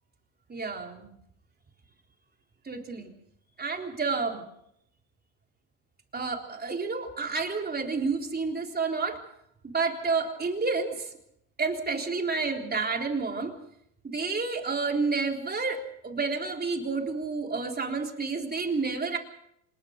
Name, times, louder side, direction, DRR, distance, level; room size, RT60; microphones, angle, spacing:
voice 1, 0.5-1.1 2.7-3.1 3.6-4.4 6.1-9.2 9.6-11.1 11.6-13.5 14.0-19.2, right 4 dB, 20° right, 3 dB, 3.7 m, -30 dB
26.5 x 20.5 x 5.2 m, 0.74 s
supercardioid pair, 95°, 49 cm